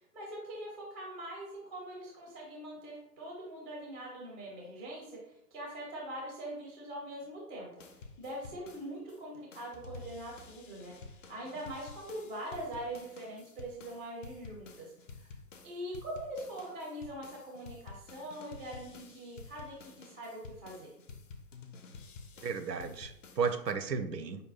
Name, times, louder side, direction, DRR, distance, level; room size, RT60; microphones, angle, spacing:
voice 1, 0.1-7.7 8.2-14.9 15.2-15.3 15.6-20.9, right 1 dB, 5° right, -3 dB, 0.4 m, -43 dB
sound 1, 7.8-9.2 9.5-23.7, left 4 dB, 50° left, 0.7 m, -51 dB
voice 2, 22.4-24.4, right 5 dB, 85° right, 9 dB, 0.6 m, -34 dB
5.2 x 2.2 x 4.1 m, 0.78 s
figure-of-eight pair, 125°, 48 cm